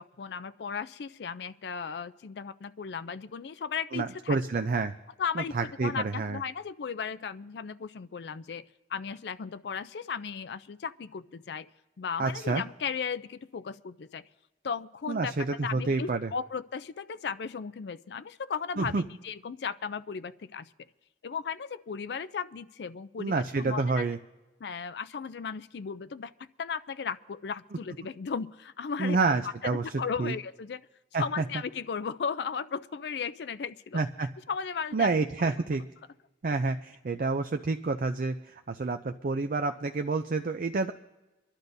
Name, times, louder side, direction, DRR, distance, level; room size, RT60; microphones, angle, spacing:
voice 1, 0.0-4.4 5.2-5.5 5.8-11.7 12.0-14.2 14.6-15.3 15.6-18.9 19.2-20.7 21.2-24.0 24.6-26.3 26.6-29.2 29.6-30.9 31.2-34.0 34.5-35.1 35.4-35.5, left 6 dB, 70° left, 14 dB, 0.4 m, -36 dB
voice 2, 3.9-4.9 5.4-6.4 12.2-12.6 15.1-16.3 18.8-19.0 23.2-24.2 29.0-30.3 31.1-31.4 33.9-34.3 34.9-35.8 36.4-40.9, right 3 dB, 50° right, 7 dB, 0.5 m, -29 dB
25.5 x 11.5 x 2.7 m, 1.1 s
head